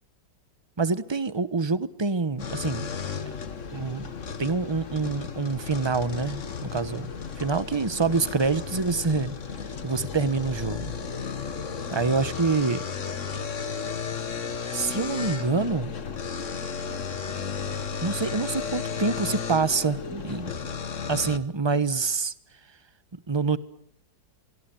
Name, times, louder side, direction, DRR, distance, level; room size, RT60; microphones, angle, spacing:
voice 1, 0.8-2.9 3.7-4.1 4.4-7.1 7.4-9.3 9.8-10.9 11.9-12.8 14.6-15.9 18.0-20.5 21.1-22.3 23.3-23.6, right 4 dB, 20° right, 15 dB, 0.8 m, -26 dB
sound 1, 2.4-21.4, left 6 dB, 45° left, 1.8 m, -34 dB
25.0 x 24.5 x 9.1 m, 0.71 s
omnidirectional pair, 2.0 m